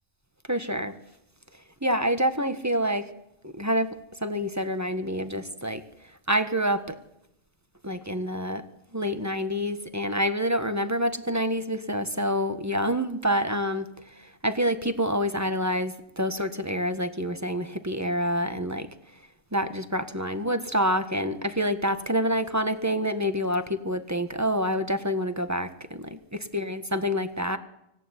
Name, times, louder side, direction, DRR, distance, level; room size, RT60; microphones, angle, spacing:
voice 1, 0.5-0.9 1.8-3.1 3.4-5.8 6.3-7.0 7.8-8.6 8.9-13.9 14.2-18.9 19.5-27.6, equal, 10° right, 9 dB, 1.4 m, -27 dB
25.5 x 17.5 x 10.0 m, 0.84 s
omnidirectional pair, 1.7 m